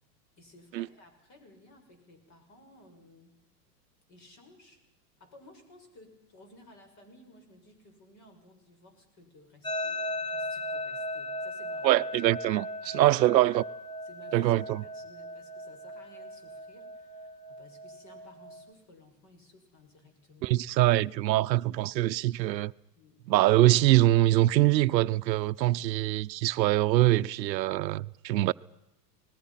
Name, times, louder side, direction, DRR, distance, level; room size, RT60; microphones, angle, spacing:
voice 1, 0.4-3.4 4.1-4.8 5.2-12.0 12.8-13.2 14.0-20.6 23.0-23.2 25.7-26.0 28.3-28.5, left 1 dB, 35° left, 6.4 m, -56 dB
sound 1, 9.6-18.7, left 1 dB, 10° left, 1.3 m, -38 dB
voice 2, 11.8-13.6 14.3-14.8 20.4-22.7 23.3-28.5, right 16 dB, 90° right, 0.8 m, -24 dB
28.5 x 20.5 x 5.8 m
supercardioid pair, 145°, 49 cm